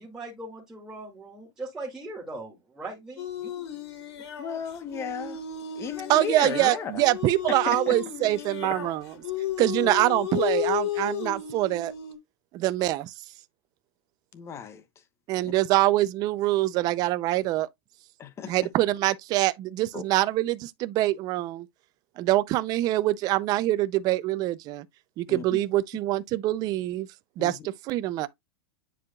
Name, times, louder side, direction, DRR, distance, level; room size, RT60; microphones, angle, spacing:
voice 1, 0.0-3.6, right 2 dB, 5° right, 2.2 m, -40 dB
sound 1, 3.2-12.2, left 10 dB, 70° left, 3.1 m, -33 dB
voice 2, 4.4-5.4 5.8-7.0 7.9-8.0 8.2-8.3 8.7-8.8 14.3-14.8 15.4-15.5 18.2-18.7 19.9-20.0 25.3-25.4 27.4-27.5, left 7 dB, 20° left, 1.0 m, -35 dB
voice 3, 6.1-9.1 9.6-11.9 12.5-13.1 15.3-17.7 18.5-21.7 22.2-24.9 25.2-27.1 27.4-28.3, right 16 dB, 25° right, 0.5 m, -25 dB
10.0 x 4.7 x 2.3 m
supercardioid pair, 160°, 14 cm